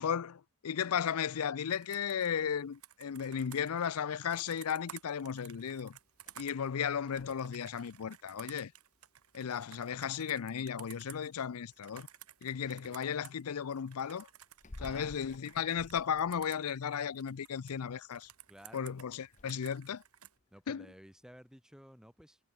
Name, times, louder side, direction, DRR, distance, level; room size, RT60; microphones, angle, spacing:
voice 1, 0.0-6.0 6.4-8.7 9.3-12.1 12.4-14.3 14.8-18.3 18.7-20.0 20.7-20.9, left 7 dB, 90° left, 0.5 m, -35 dB
Computer keyboard, 1.7-13.4 13.7-17.7 18.1-20.3, right 11 dB, 90° right, 1.7 m, -55 dB
sound 1, 4.8-21.5, left 1 dB, 35° left, 0.9 m, -59 dB
voice 2, 14.8-15.1 18.5-19.0 20.5-22.4, equal, 5° right, 3.4 m, -54 dB
head